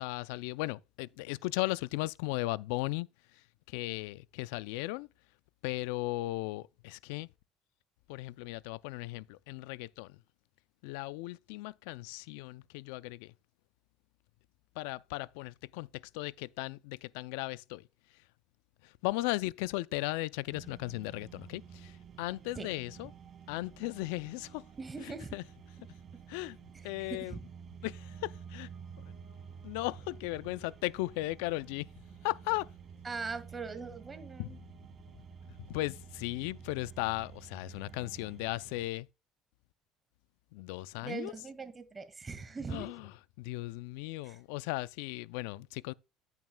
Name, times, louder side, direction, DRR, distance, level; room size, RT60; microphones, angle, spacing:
voice 1, 0.0-3.1 3.7-5.1 5.6-7.3 8.1-10.2 10.8-13.3 14.8-17.8 19.0-21.9 22.2-23.1 23.5-24.6 25.3-25.4 26.3-26.6 26.8-27.4 27.8-28.7 29.6-31.9 32.2-32.7 34.4-34.6 35.7-39.1 40.5-41.3 42.7-43.0 43.4-45.9, left 20 dB, 90° left, 0.3 m, -36 dB
sound 1, 20.5-38.9, right 7 dB, 45° right, 2.0 m, -51 dB
voice 2, 24.8-25.4 26.7-27.4 33.0-34.6 41.0-42.9 44.2-44.4, right 4 dB, 25° right, 1.8 m, -41 dB
10.5 x 9.1 x 2.2 m
supercardioid pair, 100°, 0 cm